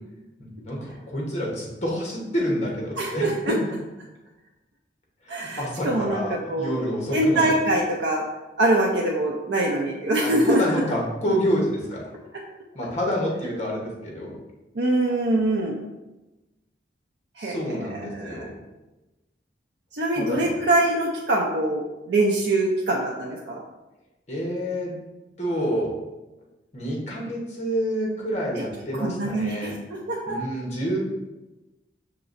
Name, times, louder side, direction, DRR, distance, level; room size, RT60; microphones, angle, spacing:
voice 1, 0.4-3.7 5.2-7.6 10.2-12.1 12.7-14.4 17.4-18.6 20.2-20.6 24.3-25.0 25.4-26.0 26.7-29.8 30.3-31.0, equal, 35° left, -3 dB, 1.0 m, -28 dB
voice 2, 3.0-3.5 5.3-6.2 6.5-6.7 7.1-8.2 8.6-10.6 14.8-15.8 17.4-17.6 18.1-18.4 19.9-23.6 28.9-29.7 30.1-30.3, right 1 dB, 75° right, -2 dB, 0.5 m, -23 dB
5.8 x 3.0 x 2.5 m, 1.1 s
head